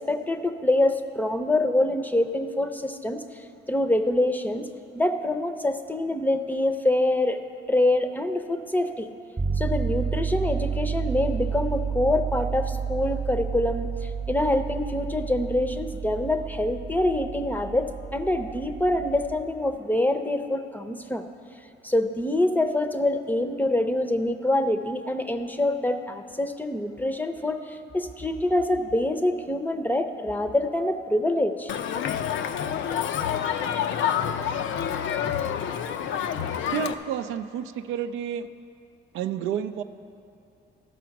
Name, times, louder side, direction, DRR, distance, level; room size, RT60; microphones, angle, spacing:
voice 1, 0.0-3.2 3.7-4.7 4.9-7.4 7.7-9.1 9.6-21.2 21.8-31.7, left 1 dB, 10° left, 8 dB, 0.6 m, -25 dB
sound 1, 9.4-19.5, right 6 dB, 20° right, 0.8 m, -31 dB
Crowd, 31.7-36.9, left 9 dB, 75° left, 0.5 m, -28 dB
voice 2, 36.7-38.5 39.1-39.8, right 9 dB, 85° right, 9 dB, 0.4 m, -30 dB
13.5 x 6.1 x 5.9 m, 2.8 s
cardioid pair, 90°, 20 cm